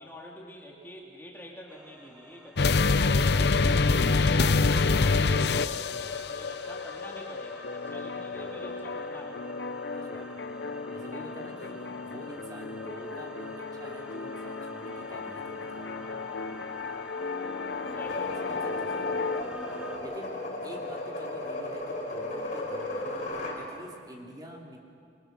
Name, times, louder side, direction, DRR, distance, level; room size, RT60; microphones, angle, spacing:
voice 1, 0.0-9.7 15.9-16.8 17.8-18.5, left 1 dB, 10° left, -2 dB, 2.3 m, -47 dB
sound 1, 1.7-20.0, equal, 5° right, 1.8 m, -47 dB
sound 2, 2.6-19.4, left 4 dB, 60° left, 0.7 m, -29 dB
voice 2, 8.3-8.8 10.0-10.3 10.9-15.9 17.6-19.3 19.8-24.8, equal, 20° right, -1 dB, 2.9 m, -47 dB
sound 3, 17.8-23.6, left 1 dB, 40° left, 4.3 m, -35 dB
26.0 x 24.0 x 6.6 m, 2.3 s
head